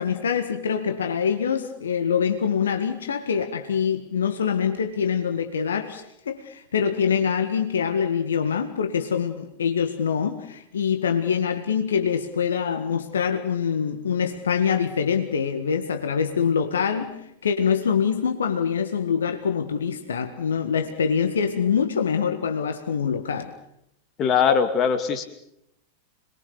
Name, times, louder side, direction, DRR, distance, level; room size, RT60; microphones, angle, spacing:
voice 1, 0.0-23.5, left 7 dB, 65° left, 1.8 m, -25 dB
voice 2, 24.2-25.2, left 7 dB, 30° left, 2.5 m, -21 dB
27.0 x 21.5 x 6.9 m
figure-of-eight pair, 90°, 0 cm